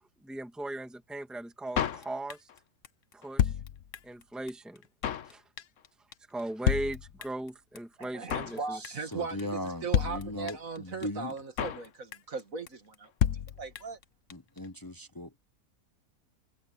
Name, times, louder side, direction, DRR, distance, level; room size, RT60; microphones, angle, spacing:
voice 1, 0.2-2.5 3.1-3.5 4.0-4.8 5.2-5.4 6.3-8.8, right 1 dB, ahead, 1.9 m, -38 dB
Drum kit, 1.8-2.6 2.8-2.9 3.1-4.2 4.5-4.6 4.8-5.3 5.6-5.9 6.1-6.2 6.4-6.5 6.7-7.5 7.8-7.9 8.0-8.6 8.8-9.1 9.4-9.5 9.7-9.8 9.9-10.8 11.0-11.1 11.3-11.9 12.1-12.4 12.7-12.8 12.9-13.0 13.2-14.0 14.3-14.4 14.6-14.7, left 9 dB, 60° left, 1.1 m, -30 dB
voice 2, 8.0-13.1 13.6-14.0, right 5 dB, 65° right, 2.4 m, -38 dB
voice 3, 8.7-11.4 14.3-15.4, left 1 dB, 25° left, 0.5 m, -39 dB
omnidirectional pair, 1.5 m